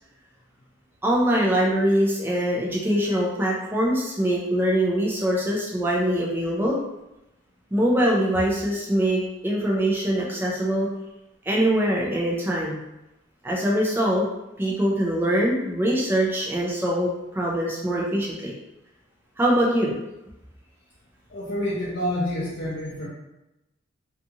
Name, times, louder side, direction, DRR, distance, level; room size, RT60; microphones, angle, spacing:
voice 1, 1.0-6.8 7.7-10.9 11.5-12.8 13.4-14.2 14.6-18.5 19.4-20.0, right 1 dB, 10° right, -4 dB, 0.4 m, -23 dB
voice 2, 21.3-23.1, left 1 dB, 55° left, -8 dB, 0.6 m, -28 dB
2.6 x 2.4 x 2.7 m, 0.93 s
head